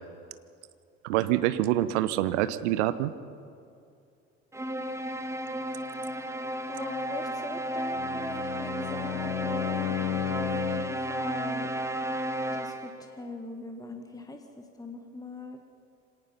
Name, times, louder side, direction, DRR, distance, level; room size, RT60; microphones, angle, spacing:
voice 1, 1.0-3.1, right 14 dB, 65° right, 14 dB, 1.0 m, -26 dB
sound 1, 4.5-13.1, right 1 dB, 5° right, 1.5 m, -33 dB
voice 2, 6.7-10.0 10.3-11.7 12.5-15.6, left 2 dB, 10° left, 5 dB, 1.8 m, -41 dB
Bowed string instrument, 7.9-11.1, left 10 dB, 65° left, 1.0 m, -33 dB
25.5 x 18.0 x 5.8 m, 2.5 s
figure-of-eight pair, 60°, 38 cm